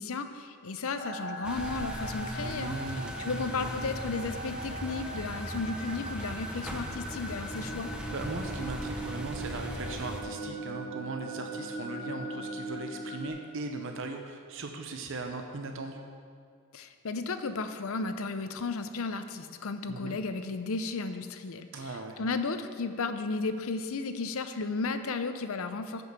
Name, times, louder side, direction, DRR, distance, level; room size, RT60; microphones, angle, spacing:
voice 1, 0.0-2.8 3.2-7.9 16.7-21.7 22.2-26.0, left 4 dB, 70° left, 9 dB, 0.6 m, -34 dB
sound 1, 1.0-13.3, right 1 dB, 50° left, 1.8 m, -40 dB
sound 2, 1.4-10.2, equal, 5° right, 0.7 m, -39 dB
voice 2, 2.4-3.4 8.1-16.0 19.9-20.2 21.7-22.2, right 3 dB, 60° right, 4 dB, 0.7 m, -38 dB
10.0 x 5.5 x 6.8 m, 2.2 s
head